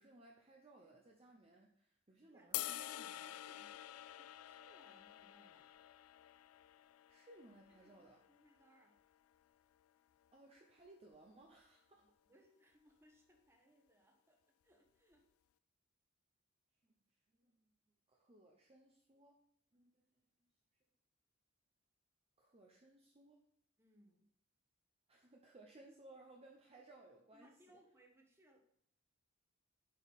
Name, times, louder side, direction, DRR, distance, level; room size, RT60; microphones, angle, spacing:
voice 1, 0.0-3.4 7.1-8.2 10.3-12.0 17.4-17.7 18.1-19.4 19.7-20.0 22.4-23.4 25.1-27.8, right 2 dB, 30° right, 0 dB, 0.8 m, -62 dB
sound 1, 2.5-8.8, left 14 dB, 90° left, 0.4 m, -48 dB
voice 2, 3.4-5.8 7.7-9.0 11.9-15.2 23.8-24.3 27.3-28.6, right 1 dB, 10° right, 1 dB, 1.3 m, -69 dB
7.6 x 5.2 x 4.2 m, 0.69 s
head